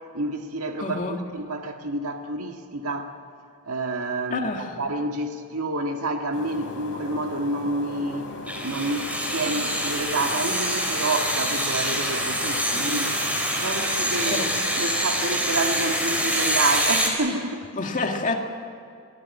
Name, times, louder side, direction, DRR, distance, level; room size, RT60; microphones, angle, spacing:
voice 1, 0.1-3.1 3.7-8.3 8.6-17.7, right 2 dB, 80° right, 4 dB, 1.7 m, -29 dB
voice 2, 0.8-1.2 4.3-4.7 14.3-14.5 17.7-18.3, left 3 dB, 35° left, 2 dB, 2.4 m, -27 dB
sound 1, 6.3-17.4, left 2 dB, 80° left, 3.1 m, -38 dB
sound 2, 8.5-17.1, equal, 5° right, 4.1 m, -25 dB
26.5 x 16.0 x 10.0 m, 2.3 s
head